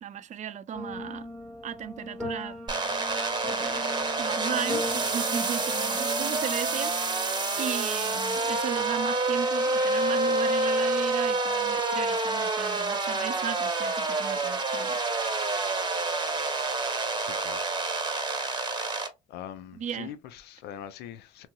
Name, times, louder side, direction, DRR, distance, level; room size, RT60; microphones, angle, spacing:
voice 1, 0.0-1.3 1.6-2.6 3.5-7.3 7.6-15.0 19.7-20.1, right 8 dB, 45° right, 0.4 m, -36 dB
sound 1, 0.7-9.1, left 1 dB, ahead, 1.1 m, -40 dB
sound 2, 2.7-19.1, right 3 dB, 25° right, 0.8 m, -28 dB
voice 2, 17.2-17.7 19.3-21.5, left 10 dB, 70° left, 0.5 m, -42 dB
2.9 x 2.7 x 2.3 m
supercardioid pair, 75°, 18 cm